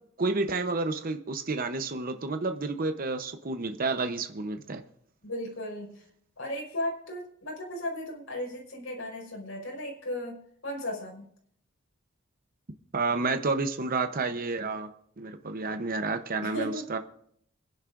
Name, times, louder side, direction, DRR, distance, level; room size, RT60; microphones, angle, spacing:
voice 1, 0.2-4.8 12.9-14.9 15.2-17.0, right 3 dB, 45° right, 7 dB, 0.8 m, -30 dB
voice 2, 5.2-6.0 6.4-10.4 10.6-11.2 16.4-16.8, left 1 dB, 85° left, -1 dB, 4.9 m, -35 dB
29.5 x 10.5 x 2.6 m, 0.67 s
head